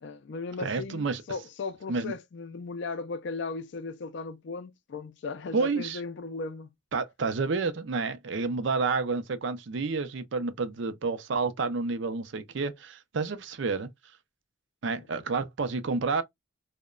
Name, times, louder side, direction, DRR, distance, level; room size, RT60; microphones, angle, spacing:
voice 1, 0.0-6.7 15.0-15.1, left 4 dB, 60° left, 0.4 m, -37 dB
voice 2, 0.6-1.2 1.9-2.1 5.5-6.0 6.9-13.9 14.8-16.2, right 4 dB, 65° right, 0.5 m, -29 dB
2.8 x 2.1 x 2.3 m
head